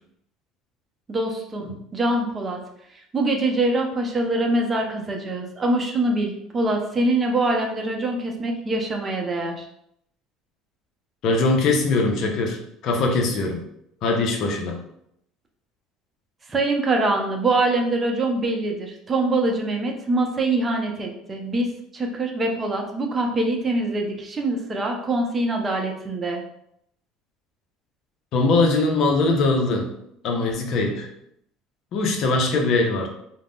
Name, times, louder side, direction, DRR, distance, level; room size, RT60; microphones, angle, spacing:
voice 1, 1.1-2.6 3.1-9.7 16.5-26.4, right 2 dB, 25° right, 2 dB, 0.6 m, -24 dB
voice 2, 11.2-12.6 12.8-13.6 14.0-14.8 28.3-29.9 30.2-31.1 31.9-33.1, left 3 dB, 60° left, 3 dB, 0.5 m, -21 dB
2.3 x 2.1 x 3.5 m, 0.74 s
supercardioid pair, 90°, 0 cm